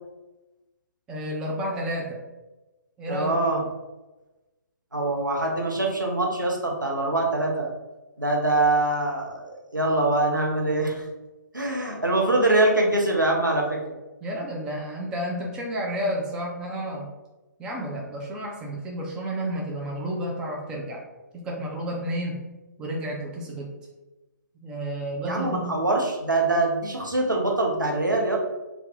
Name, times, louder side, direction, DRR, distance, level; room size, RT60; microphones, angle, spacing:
voice 1, 1.1-2.2 3.0-3.3 14.2-17.1 17.6-21.0 21.3-22.5 22.8-23.7 24.6-25.7, equal, 10° right, -2 dB, 0.3 m, -31 dB
voice 2, 3.1-3.6 4.9-7.7 8.2-11.1 11.5-13.9 25.2-28.4, right 2 dB, 85° right, -1 dB, 0.8 m, -24 dB
2.6 x 2.3 x 3.6 m, 1.1 s
figure-of-eight pair, 130°, 10 cm